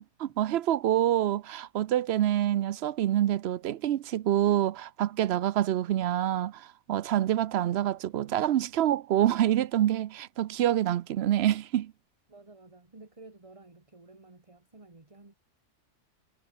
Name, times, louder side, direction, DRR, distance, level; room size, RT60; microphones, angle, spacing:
voice 1, 0.0-11.9, right 12 dB, 65° right, 0.8 m, -26 dB
voice 2, 12.3-15.3, right 3 dB, 25° right, 2.1 m, -52 dB
omnidirectional pair, 1.3 m